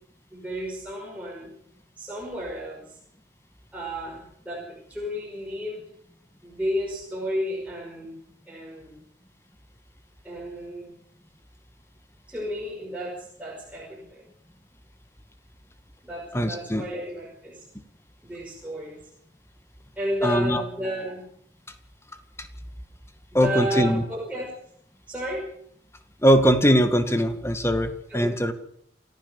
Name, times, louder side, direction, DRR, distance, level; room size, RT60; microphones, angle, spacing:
voice 1, 0.3-1.5 2.0-3.0 3.7-5.8 6.4-8.1 8.5-9.0 10.2-10.9 12.3-14.3 16.0-17.7 18.2-19.0 20.0-21.2 23.3-24.5 25.1-25.4 28.1-28.3, equal, 10° right, -4 dB, 5.7 m, -32 dB
voice 2, 16.3-16.8 20.2-20.6 22.4-22.5 23.3-24.0 26.2-28.5, equal, 15° left, 8 dB, 2.0 m, -21 dB
28.5 x 15.0 x 7.2 m, 0.69 s
head